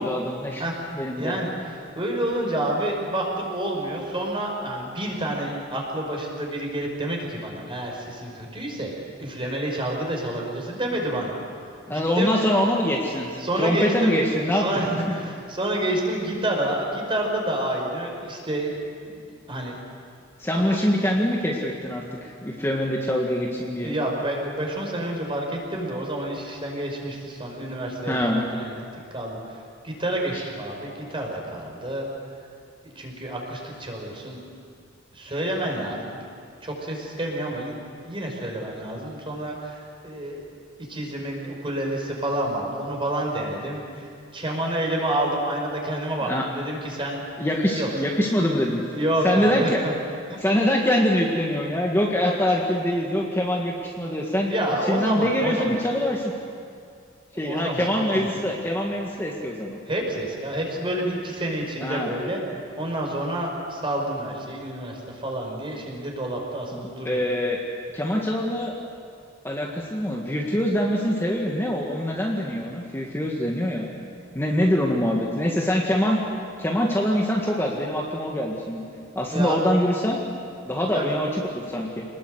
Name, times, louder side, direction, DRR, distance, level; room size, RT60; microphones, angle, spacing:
voice 1, 0.0-0.7 0.9-1.3 11.9-14.7 20.4-23.9 28.1-28.5 30.3-30.4 46.2-46.5 47.4-48.8 49.2-49.8 50.4-54.5 54.9-56.3 57.4-59.8 61.8-62.1 66.7-67.6 67.9-68.8 69.4-73.9 74.3-76.2 76.6-78.9 79.2-80.2 80.6-82.0, equal, 10° left, -2 dB, 1.9 m, -24 dB
voice 2, 1.2-1.5 2.0-8.9 9.2-11.3 11.9-12.4 13.4-18.8 19.0-19.8 20.7-20.9 23.8-28.8 29.1-29.6 29.8-32.1 32.8-34.4 35.1-36.2 36.6-37.8 38.1-40.4 40.9-47.2 47.7-47.9 48.9-49.9 50.3-50.5 54.4-55.7 57.3-58.3 59.9-62.4 62.8-67.2 79.3-79.6 80.9-81.0, right 1 dB, 25° right, 0 dB, 5.5 m, -29 dB
27.0 x 20.5 x 8.2 m, 2.3 s
head